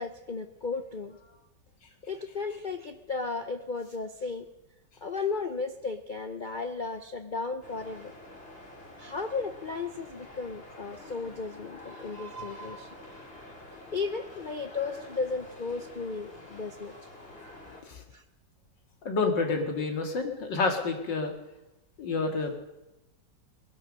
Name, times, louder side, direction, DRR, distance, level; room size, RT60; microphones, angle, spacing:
voice 1, 0.0-1.4 2.0-4.5 5.0-8.1 9.0-12.9 13.9-17.0 18.1-18.2, left 4 dB, 65° left, 8 dB, 0.4 m, -35 dB
sound 1, 7.6-17.8, left 1 dB, 30° left, 2.9 m, -47 dB
voice 2, 19.0-21.3 22.0-22.6, left 3 dB, 90° left, 4 dB, 2.7 m, -29 dB
20.0 x 11.0 x 6.4 m, 0.98 s
omnidirectional pair, 1.9 m